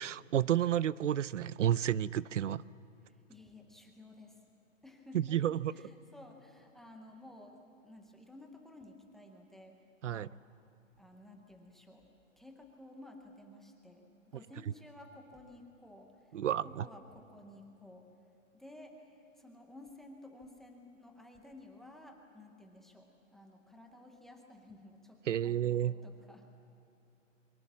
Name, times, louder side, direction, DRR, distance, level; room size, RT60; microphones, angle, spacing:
voice 1, 0.0-2.6 5.3-5.7 10.0-10.3 16.3-16.8 25.3-25.9, right 11 dB, 70° right, 20 dB, 0.6 m, -31 dB
voice 2, 3.0-4.4 4.8-10.3 11.0-12.1 12.4-18.2 18.5-26.5, left 1 dB, ahead, 3 dB, 0.6 m, -54 dB
26.0 x 23.5 x 7.3 m, 2.7 s
hypercardioid pair, 155°, 39 cm